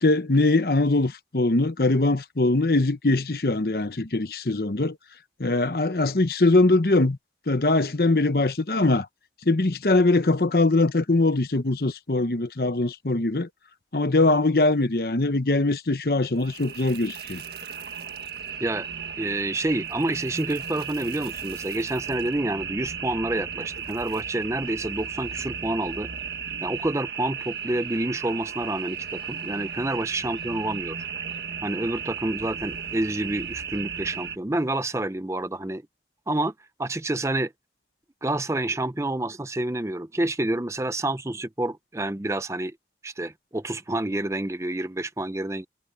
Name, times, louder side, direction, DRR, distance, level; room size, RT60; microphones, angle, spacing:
voice 1, 0.0-5.0 5.4-7.2 7.5-9.1 9.5-13.5 13.9-17.4, left 2 dB, 55° left, 1.0 m, -22 dB
sound 1, 16.3-34.4, right 7 dB, 65° right, 1.7 m, -35 dB
voice 2, 19.2-26.1 26.6-31.0 31.6-35.8 36.3-36.5 36.8-37.5 38.2-42.7 43.0-45.7, right 1 dB, 15° right, 0.6 m, -28 dB
head